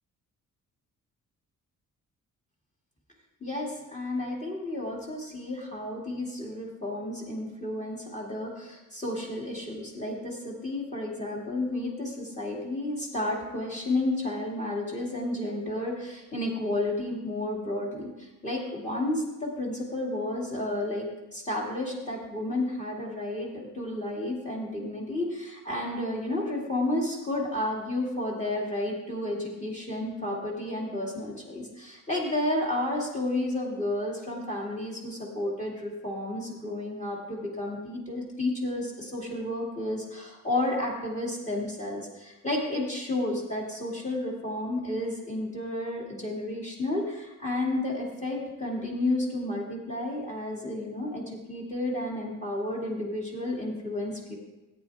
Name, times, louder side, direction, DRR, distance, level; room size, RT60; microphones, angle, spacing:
voice 1, 3.4-54.4, left 1 dB, 20° left, -2 dB, 2.4 m, -31 dB
14.0 x 9.0 x 3.5 m, 1.1 s
cardioid pair, 135°, 33 cm